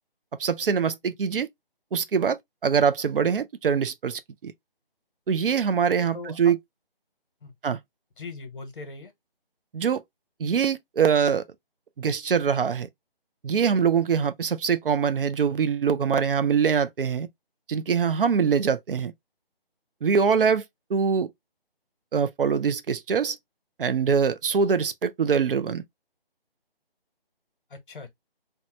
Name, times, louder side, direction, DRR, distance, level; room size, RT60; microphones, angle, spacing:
voice 1, 0.4-1.5 1.9-2.4 2.6-4.5 5.3-6.6 7.6-7.8 9.7-10.0 10.4-11.4 12.0-12.9 13.4-17.3 17.7-19.1 20.0-20.6 20.9-21.3 22.1-23.4 23.8-25.8, right 6 dB, 65° right, 0.5 m, -23 dB
voice 2, 6.1-6.5 7.4-7.5 8.2-9.1 27.7-28.1, left 3 dB, 60° left, 1.1 m, -40 dB
2.8 x 2.2 x 2.9 m
figure-of-eight pair, 165°, 30 cm